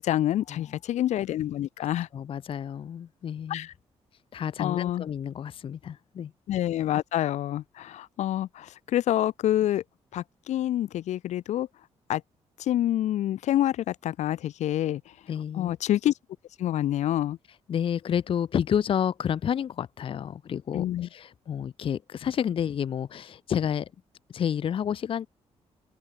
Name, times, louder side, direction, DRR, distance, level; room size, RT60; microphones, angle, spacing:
voice 1, 0.0-2.1 3.5-3.7 4.6-5.1 6.5-9.8 10.1-11.7 12.1-12.2 12.6-15.0 15.5-16.1 16.6-17.4 20.7-21.1, left 12 dB, 85° left, 1.5 m, -27 dB
voice 2, 2.1-3.7 4.3-6.3 15.3-15.8 17.7-23.9 24.3-25.3, left 8 dB, 50° left, 0.8 m, -30 dB
open air
cardioid pair, 125°, 12 cm